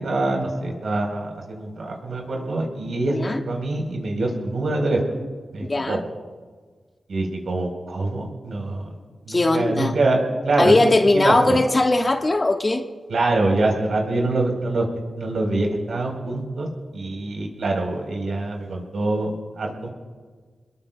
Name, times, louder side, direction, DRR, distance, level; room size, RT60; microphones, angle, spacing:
voice 1, 0.0-3.1 3.5-5.0 5.5-6.0 7.1-8.9 9.2-10.2 10.4-10.7 11.1-11.6 13.1-14.8 15.2-16.7 16.9-19.9, right 2 dB, 75° right, 1 dB, 4.2 m, -24 dB
voice 2, 3.1-3.4 5.6-6.0 9.3-9.9 10.6-12.8, left 2 dB, 30° left, 3 dB, 1.4 m, -19 dB
28.5 x 21.5 x 2.3 m, 1.5 s
wide cardioid pair, 95°, 0 cm